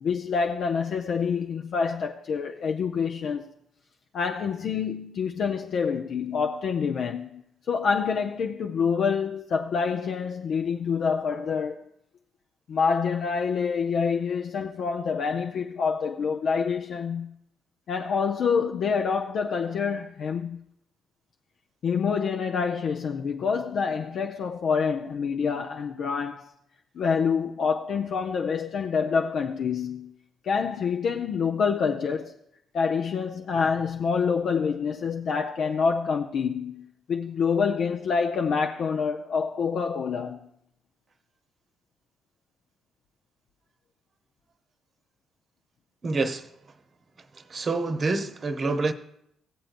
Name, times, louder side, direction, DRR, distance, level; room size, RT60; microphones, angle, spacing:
voice 1, 0.0-3.5 4.1-7.4 7.7-11.8 12.7-17.3 17.9-20.6 21.8-26.4 27.0-30.1 30.4-32.3 32.7-40.4, left 6 dB, 65° left, 0.5 m, -27 dB
voice 2, 46.0-46.5 47.3-48.9, right 3 dB, 45° right, 0.9 m, -27 dB
17.0 x 7.7 x 2.5 m
hypercardioid pair, 55°, 0 cm